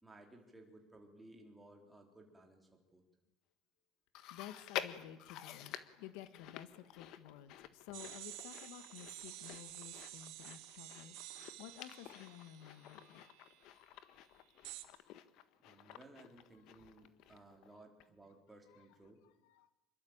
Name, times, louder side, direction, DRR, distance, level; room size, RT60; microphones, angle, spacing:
voice 1, 0.0-3.0 15.6-19.2, right 2 dB, 5° right, 2 dB, 4.0 m, -59 dB
Chewing mastication, 4.1-17.7 18.0-18.1 18.9-19.0, left 12 dB, 50° left, 1.5 m, -50 dB
voice 2, 4.3-13.3 13.7-14.2 15.0-15.2 16.7-16.8 19.0-19.7, left 11 dB, 80° left, 12 dB, 1.9 m, -54 dB
sound 1, 7.9-13.6 14.6-14.8, right 16 dB, 65° right, 2.6 m, -51 dB
27.0 x 22.5 x 9.0 m, 0.95 s
cardioid pair, 180°, 0 cm